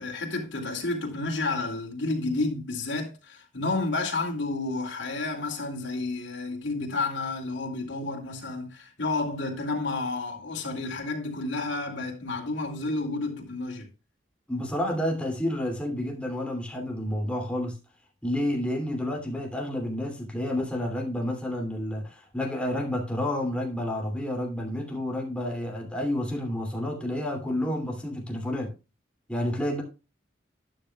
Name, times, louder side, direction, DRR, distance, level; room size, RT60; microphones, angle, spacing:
voice 1, 0.0-13.9, left 3 dB, 80° left, 2.5 m, -31 dB
voice 2, 14.5-17.8 18.2-28.7 29.3-29.8, left 1 dB, 5° left, 2.6 m, -30 dB
12.5 x 9.3 x 2.3 m
head